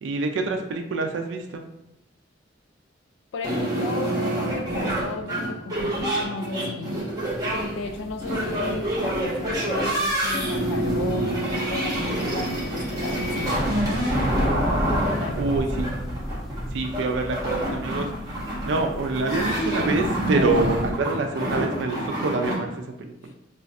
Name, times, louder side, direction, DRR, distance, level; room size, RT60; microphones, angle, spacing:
voice 1, 0.0-1.6 15.4-15.9 16.7-18.1 18.6-22.7 23.0-23.1, right 3 dB, 75° right, 4 dB, 0.4 m, -26 dB
voice 2, 3.3-7.1 7.7-14.6 15.0-15.6 23.2-23.3, left 4 dB, 70° left, 5 dB, 0.3 m, -35 dB
sound 1, 3.4-22.5, right 1 dB, 20° right, 0.9 m, -27 dB
sound 2, 7.3-20.9, equal, ahead, 0.5 m, -33 dB
2.4 x 2.4 x 4.0 m, 0.88 s
head